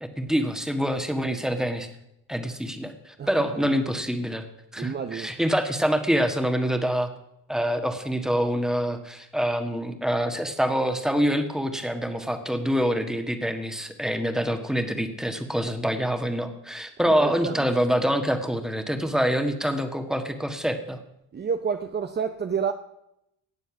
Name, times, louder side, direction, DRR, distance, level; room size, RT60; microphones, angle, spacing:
voice 1, 0.0-1.9 2.3-4.4 4.7-7.1 7.5-21.0, equal, ahead, 6 dB, 1.5 m, -26 dB
voice 2, 3.2-3.7 4.8-5.3 17.0-17.7 21.3-22.7, right 6 dB, 25° right, 8 dB, 0.7 m, -30 dB
18.5 x 7.0 x 6.0 m, 0.82 s
cardioid pair, 100°, 38 cm